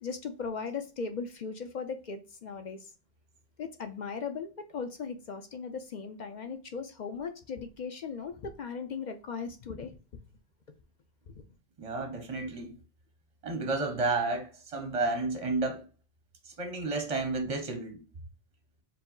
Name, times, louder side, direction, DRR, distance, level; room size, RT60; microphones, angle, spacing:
voice 1, 0.0-2.9 3.6-9.9 11.3-11.4, left 5 dB, 55° left, 0.5 m, -38 dB
voice 2, 11.8-12.7 13.4-15.8 16.4-18.0, right 3 dB, 40° right, 0.6 m, -31 dB
4.7 x 2.0 x 3.7 m
omnidirectional pair, 1.1 m